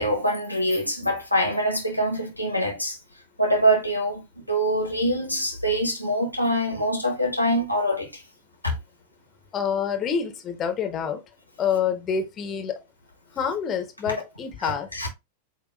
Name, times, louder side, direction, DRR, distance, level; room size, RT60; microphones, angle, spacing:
voice 1, 0.0-3.0 3.4-4.2 4.5-8.2 8.6-8.7 14.6-15.1, equal, 90° left, 1.3 m, -24 dB
voice 2, 9.5-11.2 11.6-12.8 13.3-14.9, left 7 dB, 30° left, 0.9 m, -27 dB
7.9 x 2.6 x 2.4 m
figure-of-eight pair, 90°, 0 cm